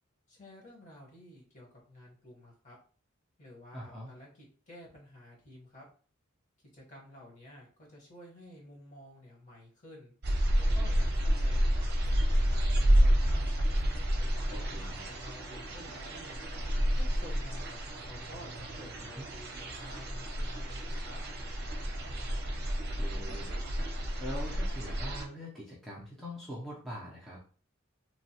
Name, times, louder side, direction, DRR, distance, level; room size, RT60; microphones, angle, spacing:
voice 1, 0.3-2.8 3.4-5.8 6.7-10.1 10.6-13.4 14.1-16.5 16.9-21.2, left 1 dB, 40° left, -3 dB, 1.2 m, -52 dB
voice 2, 3.7-4.1 14.5-15.1 19.2-19.3 22.9-27.4, equal, ahead, -6 dB, 0.5 m, -43 dB
sound 1, 10.2-25.2, equal, 55° right, 0.6 m, -30 dB
3.0 x 2.2 x 2.8 m, 0.41 s
head